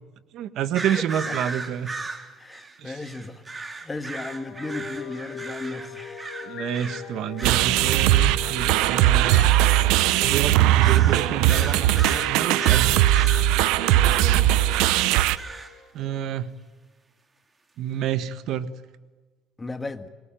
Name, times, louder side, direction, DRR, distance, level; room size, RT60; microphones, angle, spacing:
voice 1, 0.3-1.9 2.8-2.9 6.4-9.5 10.2-13.0 15.9-16.5 17.8-18.7, right 10 dB, 60° right, 12 dB, 1.5 m, -29 dB
sound 1, 0.7-7.1 7.4-7.8 8.9-9.6 10.0-10.3 10.7-14.0 14.7-15.7, right 3 dB, 20° right, 2.5 m, -36 dB
voice 2, 0.9-1.4 2.4-6.3 13.9-14.6 19.6-20.1, left 2 dB, 15° left, 8 dB, 1.7 m, -36 dB
sound 2, 4.0-16.1, left 7 dB, 45° left, 7.0 m, -39 dB
sound 3, 7.4-15.4, right 14 dB, 85° right, 0.9 m, -19 dB
24.0 x 21.0 x 9.1 m, 1.3 s
cardioid pair, 130°, 0 cm